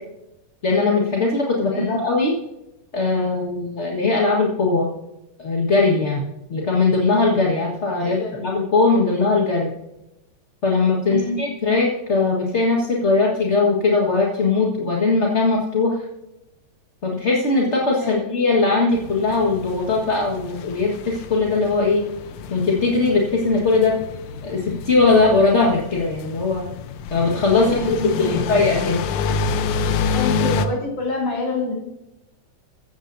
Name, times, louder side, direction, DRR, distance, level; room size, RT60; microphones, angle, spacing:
voice 1, 0.6-2.3 2.9-4.9 5.4-6.2 6.5-9.7 10.6-15.9 17.0-22.0 22.5-23.9 24.4-26.7 27.1-28.0 28.3-29.0, left 3 dB, 30° left, -2 dB, 1.3 m, -20 dB
voice 2, 1.6-2.0 8.0-8.4 11.0-11.4 18.0-18.4 27.6-28.4 30.1-31.7, left 2 dB, 55° left, -1 dB, 4.9 m, -27 dB
sound 1, 18.9-30.7, left 5 dB, 75° left, 2.1 m, -28 dB
15.5 x 14.0 x 2.7 m, 0.90 s
omnidirectional pair, 3.3 m